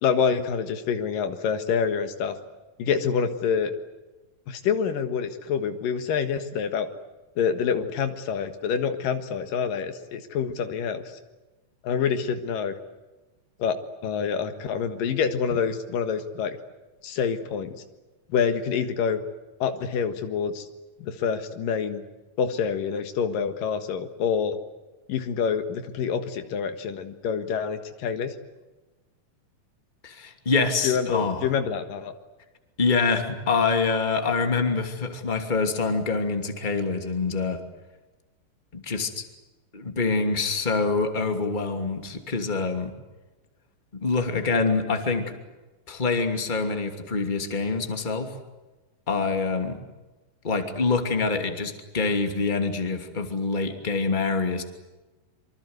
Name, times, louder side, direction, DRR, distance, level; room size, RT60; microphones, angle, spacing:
voice 1, 0.0-2.4 2.8-3.7 4.5-6.9 7.4-11.0 11.8-12.7 13.6-16.6 17.0-17.8 18.3-19.2 19.6-20.7 21.0-22.0 22.4-24.6 25.1-28.3 30.8-32.1, left 6 dB, 80° left, 9 dB, 3.3 m, -27 dB
voice 2, 30.0-31.5 32.8-37.6 38.7-39.2 39.7-42.9 43.9-45.3 45.9-48.3 49.1-49.8 50.4-54.6, left 4 dB, 15° left, 5 dB, 2.4 m, -25 dB
26.0 x 25.0 x 8.1 m, 1.1 s
omnidirectional pair, 3.9 m